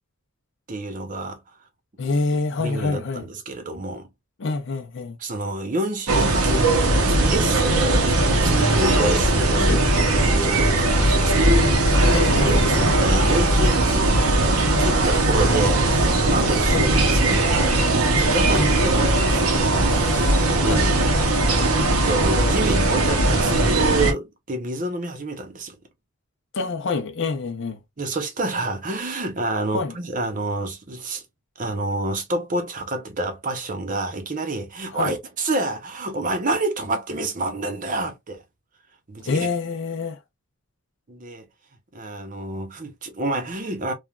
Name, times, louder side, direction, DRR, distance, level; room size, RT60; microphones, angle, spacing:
voice 1, 0.7-1.4 2.6-4.1 5.2-9.8 10.1-14.1 14.6-20.9 22.0-25.7 28.0-31.2 31.6-38.4 39.1-39.5 41.1-41.5 41.9-43.9, right 2 dB, 40° right, 0.7 m, -28 dB
voice 2, 2.0-3.2 4.4-5.2 9.6-9.8 12.1-12.8 16.7-16.8 18.6-18.7 20.7-20.8 26.5-27.8 29.7-29.9 34.9-35.1 39.3-40.2, left 3 dB, 60° left, 0.6 m, -26 dB
sound 1, 6.1-24.1, right 2 dB, 85° right, 0.8 m, -19 dB
3.1 x 2.3 x 2.3 m
head